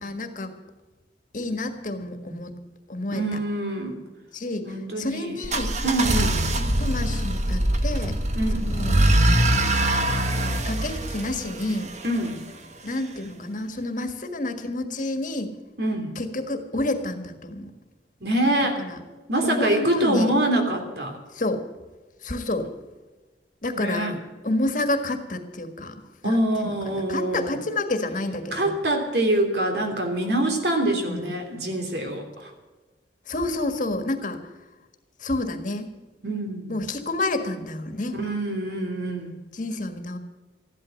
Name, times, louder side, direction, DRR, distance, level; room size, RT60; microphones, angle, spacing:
voice 1, 0.0-0.5 1.3-2.5 2.9-3.2 4.3-5.7 6.0-6.3 6.6-8.2 8.5-9.0 10.6-11.9 12.8-15.5 16.2-17.7 18.8-19.0 19.4-20.3 21.3-21.6 22.2-22.7 23.6-24.2 24.4-25.9 26.2-26.4 26.9-28.7 31.1-31.3 33.3-34.4 35.2-35.9 36.7-38.2 39.5-40.2, left 2 dB, 45° left, 7 dB, 1.7 m, -29 dB
voice 2, 3.1-4.0 4.6-5.4 5.8-6.4 8.4-8.6 12.0-12.4 15.8-16.1 18.2-18.8 19.3-21.2 23.8-24.1 26.2-27.6 28.5-32.5 36.2-36.8 38.2-39.3, right 1 dB, 65° right, 4 dB, 3.1 m, -25 dB
sound 1, 5.4-12.3, right 1 dB, 40° right, 1.4 m, -23 dB
15.0 x 12.0 x 6.4 m, 1.2 s
head